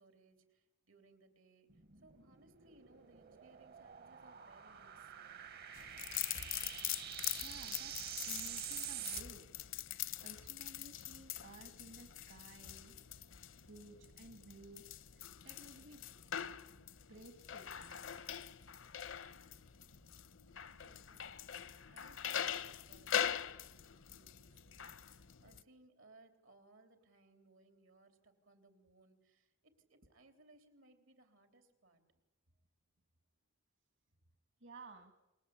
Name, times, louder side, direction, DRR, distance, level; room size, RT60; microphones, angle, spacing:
voice 1, 0.0-5.5 20.8-32.0, right 2 dB, 90° right, 7 dB, 3.7 m, -66 dB
sound 1, 1.7-9.2, right 10 dB, 55° right, 0.9 m, -47 dB
sound 2, 5.7-25.6, left 10 dB, 75° left, 0.8 m, -43 dB
voice 2, 7.0-8.0 8.3-9.5 9.8-13.0 13.6-14.8 15.1-16.0 17.1-18.0 34.6-35.1, right 2 dB, 70° right, 7 dB, 1.8 m, -56 dB
30.0 x 21.5 x 8.6 m, 1.1 s
head